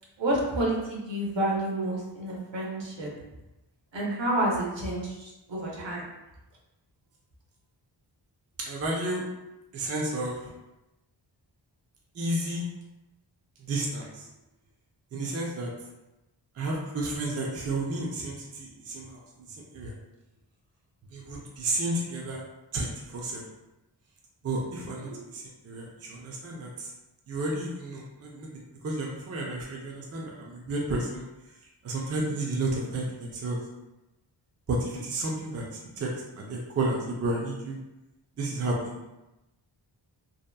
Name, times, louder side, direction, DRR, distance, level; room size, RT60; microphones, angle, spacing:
voice 1, 0.2-3.1 3.9-6.1 25.0-25.2, right 1 dB, 70° right, -3 dB, 0.8 m, -29 dB
voice 2, 8.7-9.2 9.7-10.5 12.2-12.7 13.6-14.3 15.1-15.7 16.6-19.2 19.7-19.9 21.1-22.4 22.7-23.4 24.4-26.9 27.3-31.2 31.8-33.6 34.7-35.6 36.0-37.8 38.4-38.9, right 2 dB, 35° right, -2 dB, 0.4 m, -32 dB
2.8 x 2.4 x 2.2 m, 0.98 s
wide cardioid pair, 110°, 45 cm